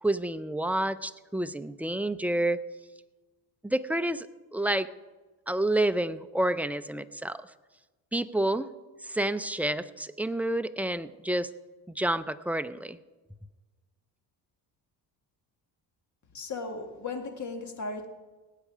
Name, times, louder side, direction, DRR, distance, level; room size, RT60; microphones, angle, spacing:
voice 1, 0.0-2.6 3.6-4.3 4.5-4.9 5.5-7.5 8.1-8.7 9.0-11.5 11.9-13.0, right 1 dB, 5° right, 12 dB, 0.4 m, -29 dB
voice 2, 16.3-18.1, left 3 dB, 45° left, 5 dB, 2.0 m, -36 dB
18.0 x 8.4 x 4.9 m, 1.2 s
cardioid pair, 95°, 41 cm